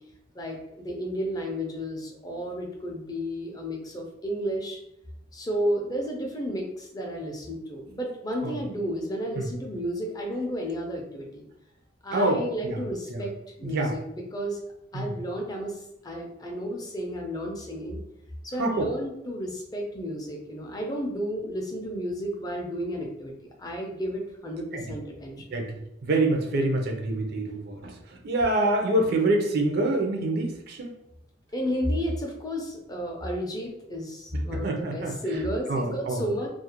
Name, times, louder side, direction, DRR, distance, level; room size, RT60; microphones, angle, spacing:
voice 1, 0.3-4.8 5.3-11.5 12.0-13.3 13.6-14.6 14.9-18.0 18.4-23.3 23.6-25.6 31.5-36.5, equal, 20° left, 0 dB, 0.4 m, -32 dB
voice 2, 12.1-12.8 13.1-13.2 13.6-13.9 14.9-15.1 18.6-18.9 24.7-24.8 25.5-25.7 26.0-30.9 34.5-35.1 35.7-36.2, right 2 dB, 55° right, 2 dB, 0.4 m, -26 dB
2.4 x 2.0 x 2.8 m, 0.85 s
head